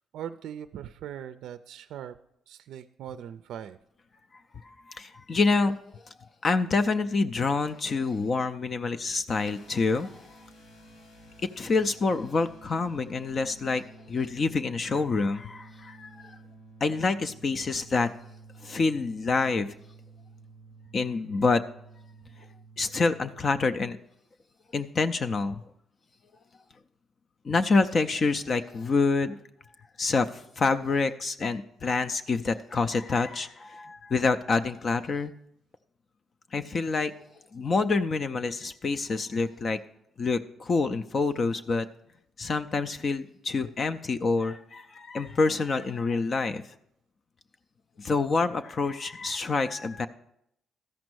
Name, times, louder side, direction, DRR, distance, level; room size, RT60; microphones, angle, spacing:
voice 1, 0.0-2.2 2.5-3.8, right 9 dB, 80° right, 11 dB, 0.3 m, -40 dB
voice 2, 4.6-6.0 6.4-10.1 11.6-16.4 16.8-18.1 18.6-19.8 20.9-21.6 22.8-24.0 24.7-25.6 27.4-29.4 30.0-35.3 36.5-37.1 37.5-39.8 40.2-41.9 42.4-46.7 48.0-50.1, left 4 dB, 45° left, 8 dB, 0.4 m, -27 dB
sound 1, 9.3-23.6, right 2 dB, 75° left, 2.0 m, -51 dB
13.0 x 5.2 x 6.2 m, 0.77 s
cardioid pair, 90°, 0 cm